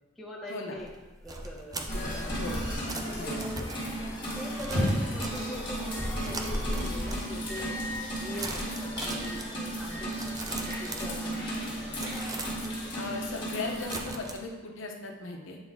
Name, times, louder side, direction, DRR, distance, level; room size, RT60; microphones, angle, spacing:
voice 1, 0.2-0.9 1.2-2.5 3.0-3.7 4.4-6.8 7.0-7.9 8.2-12.0, equal, ahead, -5 dB, 0.9 m, -43 dB
sound 1, 0.8-5.9 6.2-7.5 7.8-8.1 8.4-11.6 11.9-14.4, right 2 dB, 20° right, 0.4 m, -41 dB
sound 2, 1.9-14.0, equal, 25° left, 1.5 m, -34 dB
sound 3, 4.6-5.2 5.9-6.1 6.5-6.6 7.5-8.6 9.1-9.5 9.8-10.1 10.5-10.9 11.2-11.3 11.8-12.5, left 1 dB, 85° right, 1.7 m, -34 dB
voice 2, 12.9-15.6, left 3 dB, 70° left, 1 dB, 0.8 m, -37 dB
7.9 x 3.9 x 3.6 m, 1.2 s
head